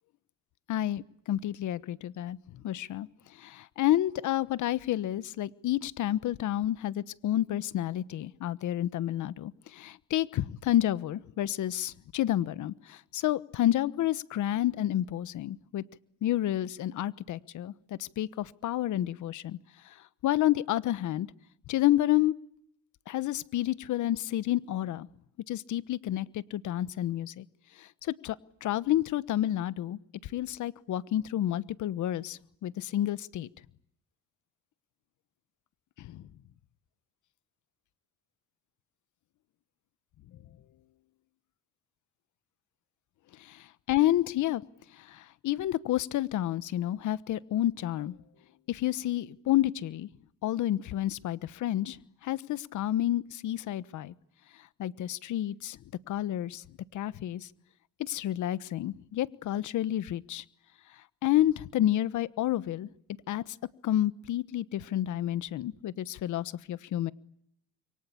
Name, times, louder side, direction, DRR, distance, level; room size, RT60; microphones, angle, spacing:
voice 1, 0.7-3.1 3.4-15.8 16.2-19.6 20.2-21.3 21.7-22.3 23.1-25.1 25.5-27.4 27.8-28.4 28.6-33.5 36.0-36.2 43.4-44.6 45.0-48.1 48.7-50.1 50.4-52.0 52.2-54.1 54.8-55.8 56.1-56.6 56.9-57.5 58.0-60.4 61.2-62.9 63.3-63.6 63.8-67.1, left 13 dB, 80° left, 17 dB, 1.2 m, -30 dB
27.0 x 24.0 x 8.6 m, 0.73 s
cardioid pair, 90°, 30 cm